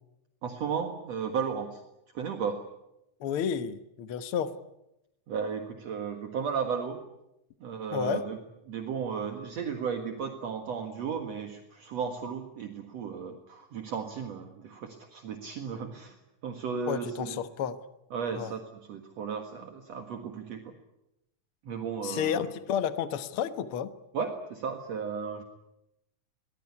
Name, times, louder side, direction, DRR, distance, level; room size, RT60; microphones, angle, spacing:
voice 1, 0.4-1.8 2.1-2.6 5.3-7.1 7.6-8.4 8.7-16.2 16.4-17.4 18.1-18.6 18.9-20.7 21.7-22.5 24.1-25.4, right 6 dB, 60° right, 5 dB, 2.7 m, -34 dB
voice 2, 3.2-4.5 7.9-8.2 16.9-17.8 18.3-18.5 22.0-23.9, left 8 dB, 55° left, 11 dB, 1.8 m, -31 dB
23.0 x 20.0 x 9.8 m, 0.87 s
omnidirectional pair, 3.6 m